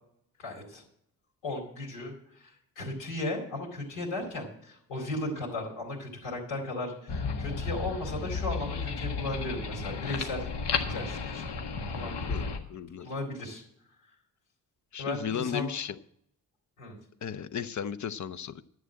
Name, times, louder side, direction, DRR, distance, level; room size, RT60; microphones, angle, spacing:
voice 1, 0.4-0.8 1.4-2.1 2.4-2.5 2.8-10.4 10.7-11.4 12.0-12.5 13.0-13.6 15.0-15.7 16.8-16.9, left 2 dB, 75° left, -1 dB, 4.2 m, -36 dB
sound 1, 7.1-12.6, left 4 dB, 60° left, 1.7 m, -33 dB
voice 2, 12.3-13.1 14.9-16.0 17.2-18.6, left 8 dB, 40° left, 15 dB, 0.8 m, -35 dB
11.0 x 7.7 x 7.6 m, 0.70 s
hypercardioid pair, 45°, 45 cm